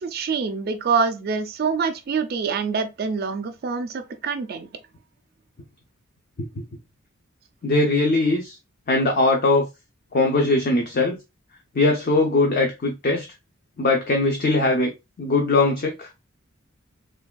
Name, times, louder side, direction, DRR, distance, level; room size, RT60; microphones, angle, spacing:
voice 1, 0.0-3.9 4.2-4.7, right 5 dB, 50° right, 0.4 m, -25 dB
voice 2, 7.6-8.6 8.9-9.7 10.1-11.2 11.7-13.3 13.8-14.9 15.2-16.1, left 2 dB, 45° left, 0.5 m, -20 dB
3.3 x 2.2 x 2.2 m
head